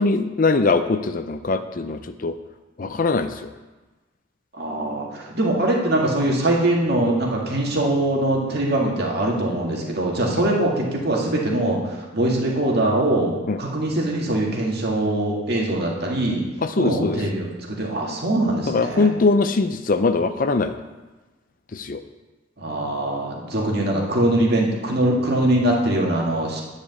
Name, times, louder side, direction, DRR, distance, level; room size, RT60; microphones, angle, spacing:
voice 1, 0.0-2.4 2.8-3.5 10.4-10.5 13.5-13.6 16.6-17.2 18.7-20.8 21.7-22.0, left 3 dB, 45° left, 10 dB, 0.5 m, -21 dB
voice 2, 4.6-16.4 16.8-19.1 22.6-26.6, right 1 dB, 55° right, -2 dB, 2.1 m, -22 dB
10.0 x 5.1 x 8.1 m, 1.2 s
head